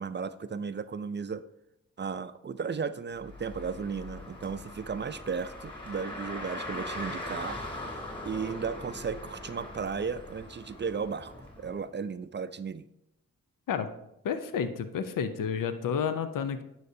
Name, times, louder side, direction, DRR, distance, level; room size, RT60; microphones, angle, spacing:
voice 1, 0.0-1.5 2.0-7.6 7.9-12.9, right 6 dB, 35° right, 13 dB, 0.4 m, -35 dB
Car, 3.2-11.7, left 1 dB, 15° left, 2.8 m, -41 dB
voice 2, 14.2-16.6, left 7 dB, 75° left, 11 dB, 0.6 m, -30 dB
9.2 x 6.5 x 2.7 m, 0.83 s
supercardioid pair, 40°, 33 cm